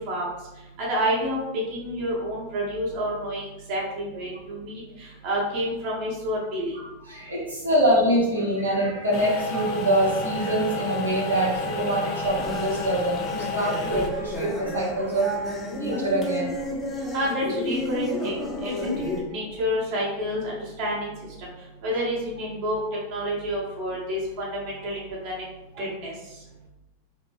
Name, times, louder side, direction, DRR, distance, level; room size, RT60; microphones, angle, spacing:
voice 1, 0.8-1.4 1.7-4.8 5.2-6.7 17.1-21.1 21.8-22.8 23.1-25.4 25.8-26.1, equal, 40° right, -5 dB, 0.9 m, -29 dB
voice 2, 6.7-15.5 15.7-16.8, right 1 dB, 80° right, -6 dB, 0.8 m, -25 dB
sound 1, 9.1-14.1, left 3 dB, 40° left, 0.3 m, -32 dB
sound 2, 12.2-19.2, left 1 dB, 5° left, 0.7 m, -32 dB
2.9 x 2.1 x 3.0 m, 0.98 s
figure-of-eight pair, 90°, 0 cm